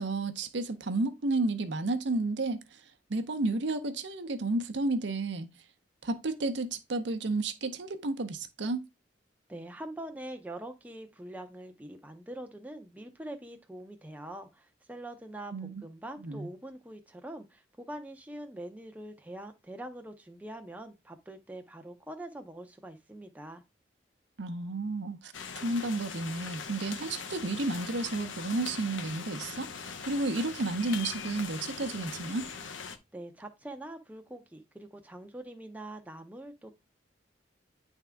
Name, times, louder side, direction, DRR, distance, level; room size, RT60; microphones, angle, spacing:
voice 1, 0.0-2.6 3.1-5.5 6.0-8.8 15.5-15.8 16.2-16.5 24.4-32.5, right 2 dB, 70° right, 0.7 m, -32 dB
voice 2, 9.5-23.6 33.1-36.7, right 1 dB, 10° right, 0.6 m, -44 dB
sound 1, 25.3-33.0, left 6 dB, 80° left, 0.7 m, -41 dB
9.2 x 3.6 x 3.4 m
head